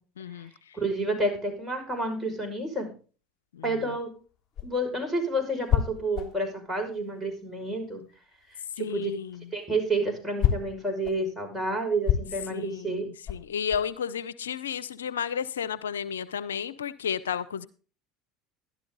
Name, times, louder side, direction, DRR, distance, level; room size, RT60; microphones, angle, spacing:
voice 1, 0.2-0.5 8.8-9.4 12.5-13.0 13.3-17.7, left 7 dB, 90° left, 0.5 m, -32 dB
voice 2, 0.7-2.9 3.6-4.1 4.6-8.0 8.8-9.1 9.5-13.1, right 2 dB, 5° right, 6.0 m, -29 dB
sound 1, 4.2-7.9 8.2-14.0, left 10 dB, 40° left, 3.1 m, -30 dB
12.0 x 12.0 x 4.0 m
hypercardioid pair, 80°, 0 cm